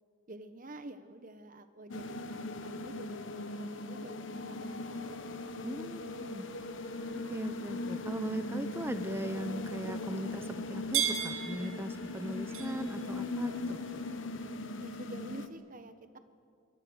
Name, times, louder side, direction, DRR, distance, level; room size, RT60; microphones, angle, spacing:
voice 1, 0.3-5.2 14.8-16.2, right 1 dB, 40° right, 10 dB, 1.3 m, -49 dB
sound 1, 1.9-15.5, left 2 dB, 65° left, 1.3 m, -39 dB
sound 2, 4.9-14.6, right 9 dB, 85° right, 1.8 m, -42 dB
voice 2, 5.6-6.5 7.3-13.8, right 1 dB, 10° right, 10 dB, 0.7 m, -39 dB
27.5 x 23.0 x 6.5 m, 2.2 s
head